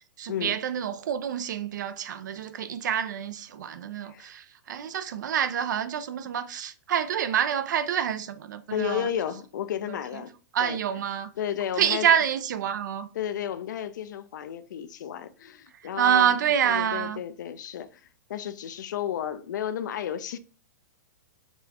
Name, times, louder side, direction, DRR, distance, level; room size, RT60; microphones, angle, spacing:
voice 1, 0.2-9.1 10.5-11.3 11.8-13.1 16.0-17.2, right 9 dB, 80° right, 0.5 m, -27 dB
voice 2, 8.7-10.3 10.6-10.8 11.4-12.1 13.1-16.4 16.6-18.0 18.3-20.4, left 10 dB, 80° left, 0.4 m, -32 dB
4.0 x 2.3 x 2.8 m
hypercardioid pair, 140°, 10 cm